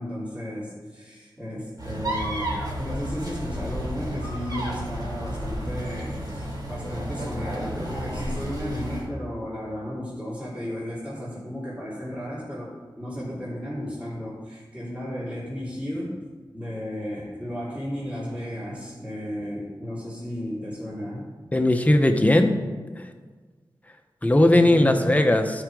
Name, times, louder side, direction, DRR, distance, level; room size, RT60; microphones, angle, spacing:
voice 1, 0.0-16.2 16.5-21.3 24.5-25.4, equal, 15° right, -9 dB, 3.1 m, -34 dB
sound 1, 1.8-9.1, equal, 55° right, 2.7 m, -32 dB
voice 2, 21.5-22.6 24.2-25.5, left 1 dB, 20° left, 6 dB, 0.8 m, -18 dB
12.5 x 5.0 x 4.7 m, 1.4 s
wide cardioid pair, 95°, 8 cm